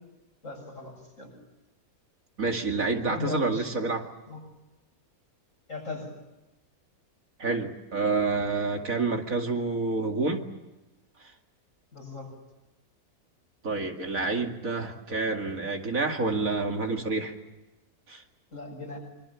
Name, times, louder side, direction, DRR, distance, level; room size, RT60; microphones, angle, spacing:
voice 1, 0.4-1.3 3.1-3.7 4.3-4.4 5.7-6.1 11.9-12.3 18.5-19.0, left 3 dB, 55° left, 1 dB, 8.2 m, -37 dB
voice 2, 2.4-4.1 7.4-10.4 13.6-17.3 18.1-18.2, right 3 dB, 60° right, 3 dB, 2.8 m, -28 dB
25.5 x 25.5 x 7.1 m, 1.0 s
omnidirectional pair, 1.6 m